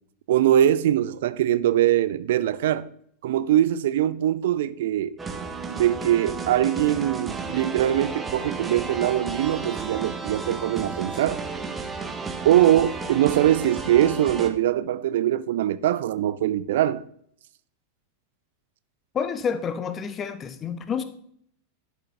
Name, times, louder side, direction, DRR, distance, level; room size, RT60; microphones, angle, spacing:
voice 1, 0.3-2.9 3.2-5.2 5.7-11.4 12.4-17.0, right 12 dB, 55° right, 0.4 m, -22 dB
sound 1, 5.2-14.5, right 4 dB, 15° right, 0.9 m, -33 dB
voice 2, 19.1-21.0, left 6 dB, 25° left, 0.8 m, -29 dB
11.5 x 6.3 x 3.4 m
figure-of-eight pair, 90°, 0 cm